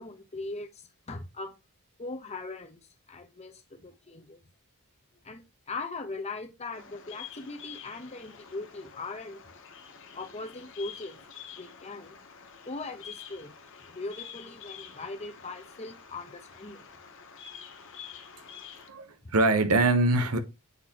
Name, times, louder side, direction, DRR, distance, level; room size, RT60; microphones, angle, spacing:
voice 1, 0.0-1.5 2.0-2.8 3.1-4.4 5.2-9.4 10.1-11.2 11.5-12.2 12.7-13.5 13.9-16.8 19.2-19.3, left 3 dB, 30° left, 0.9 m, -40 dB
Bird vocalization bird call bird song, 6.7-18.9, left 7 dB, 60° left, 1.0 m, -48 dB
voice 2, 18.9-20.4, right 2 dB, 80° right, 0.9 m, -23 dB
8.0 x 4.4 x 2.9 m
head